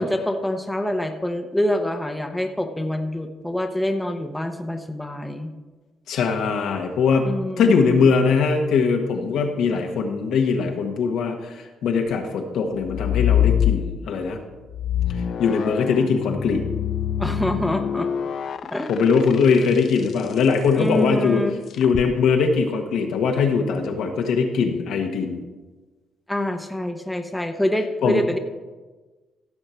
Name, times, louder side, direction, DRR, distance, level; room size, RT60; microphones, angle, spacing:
voice 1, 0.0-5.5 7.2-8.1 17.2-18.1 18.7-18.9 20.7-21.5 26.3-28.4, left 1 dB, 5° left, 5 dB, 1.0 m, -26 dB
voice 2, 6.1-7.3 7.6-14.4 15.4-16.6 18.9-21.4 21.8-25.4 28.0-28.2, left 5 dB, 80° left, 3 dB, 1.5 m, -21 dB
sound 1, 12.8-14.2 14.7-20.2 21.7-22.1, left 9 dB, 60° left, 0.4 m, -25 dB
16.0 x 6.7 x 4.5 m, 1.3 s
cardioid pair, 90°, 0 cm